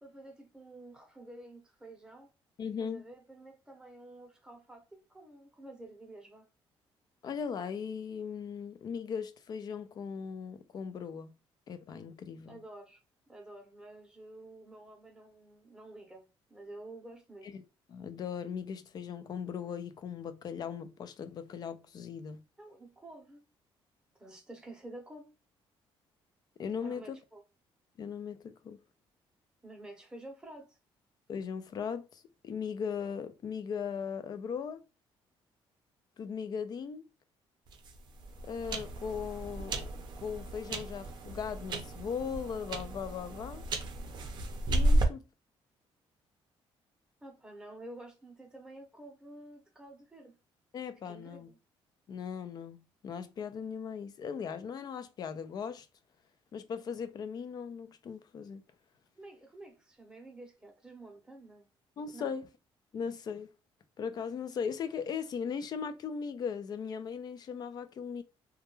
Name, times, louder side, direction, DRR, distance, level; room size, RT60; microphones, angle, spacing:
voice 1, 0.0-2.3 2.8-6.5 12.5-13.0 13.3-17.6 22.6-23.5 24.2-25.3 26.8-27.4 29.6-30.8 47.2-50.4 51.0-51.6 59.2-61.7 62.1-62.3, right 2 dB, 10° right, 0.7 m, -50 dB
voice 2, 2.6-3.0 7.2-11.3 11.7-12.6 17.4-17.6 17.9-22.4 26.6-27.2 28.0-28.8 31.3-34.8 36.2-37.1 38.4-39.9 40.2-43.6 44.7-45.2 50.7-51.5 52.1-55.9 56.5-58.6 62.0-62.4 62.9-63.5 64.0-68.2, left 6 dB, 40° left, 0.4 m, -38 dB
sound 1, 37.7-45.0, right 1 dB, 50° right, 0.5 m, -33 dB
2.3 x 2.1 x 3.0 m
cardioid pair, 135°, 10 cm